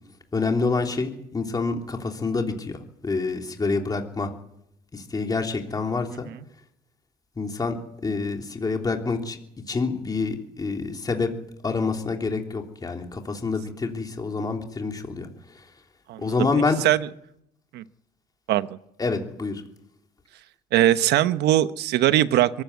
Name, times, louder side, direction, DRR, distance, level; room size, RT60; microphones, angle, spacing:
voice 1, 0.3-2.8 3.0-4.3 4.9-6.3 7.4-7.7 8.0-9.4 9.7-11.3 11.6-15.3 16.2-16.8 19.0-19.6, left 4 dB, 20° left, 3 dB, 3.2 m, -27 dB
voice 2, 16.1-16.5 16.8-17.1 17.7-17.8 18.5-18.7 20.7-22.6, right 13 dB, 80° right, 13 dB, 1.0 m, -21 dB
23.5 x 14.5 x 9.5 m, 0.78 s
cardioid pair, 110°, 17 cm